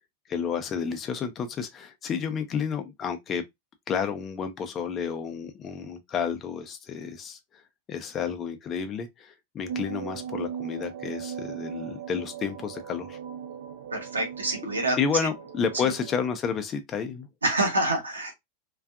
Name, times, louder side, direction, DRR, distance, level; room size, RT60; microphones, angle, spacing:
voice 1, 0.3-3.4 3.9-7.6 7.9-13.2 15.0-17.3, left 6 dB, 25° left, 0.4 m, -31 dB
sound 1, 9.7-16.1, right 8 dB, 60° right, 0.3 m, -38 dB
voice 2, 13.9-15.0 15.8-15.9 17.4-18.3, right 2 dB, 75° right, 0.8 m, -26 dB
2.5 x 2.3 x 2.3 m
figure-of-eight pair, 90°, 0 cm